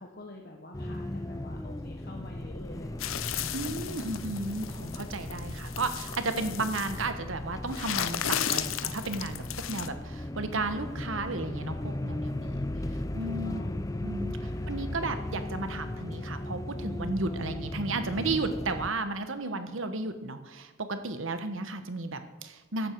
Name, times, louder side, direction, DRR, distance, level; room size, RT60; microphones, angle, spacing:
voice 1, 0.0-3.4 13.2-13.9 14.5-14.8 19.4-19.7, left 1 dB, 50° left, 1 dB, 1.2 m, -47 dB
sound 1, 0.7-18.9, left 1 dB, 15° left, 0.5 m, -37 dB
sound 2, 3.0-7.1 7.7-9.9, left 10 dB, 75° left, 0.7 m, -35 dB
voice 2, 3.5-12.6 13.1-13.6 14.0-22.9, right 3 dB, 70° right, 9 dB, 1.2 m, -34 dB
14.5 x 11.0 x 4.6 m, 1.2 s
head